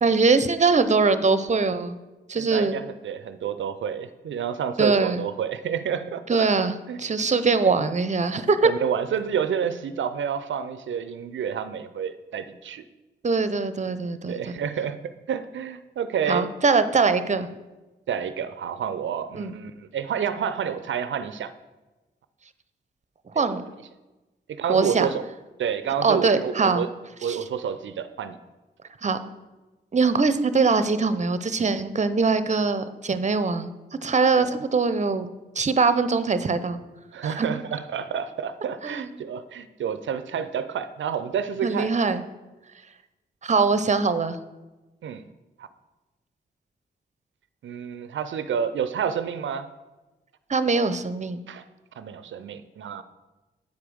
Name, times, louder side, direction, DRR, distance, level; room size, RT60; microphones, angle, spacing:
voice 1, 0.0-2.0 2.3-2.8 4.8-5.2 6.3-8.7 13.2-14.3 16.3-17.5 19.3-19.5 23.3-23.6 24.7-25.1 26.0-26.8 27.2-27.4 29.0-29.2 29.9-33.7 34.0-35.3 35.6-36.8 37.2-37.5 38.8-39.1 41.6-42.2 43.4-44.4 50.5-51.4, right 4 dB, 35° right, 12 dB, 0.7 m, -22 dB
voice 2, 2.4-6.5 6.9-7.0 8.6-12.8 14.3-15.0 15.3-16.5 18.1-21.5 23.3-23.4 24.5-25.2 25.6-26.9 27.2-28.4 34.4-34.6 37.1-41.9 45.0-45.3 45.6-45.7 47.6-49.7 51.5-51.6 52.0-53.0, right 8 dB, 75° right, 12 dB, 0.5 m, -29 dB
8.3 x 5.0 x 6.2 m, 1.1 s
cardioid pair, 45°, 20 cm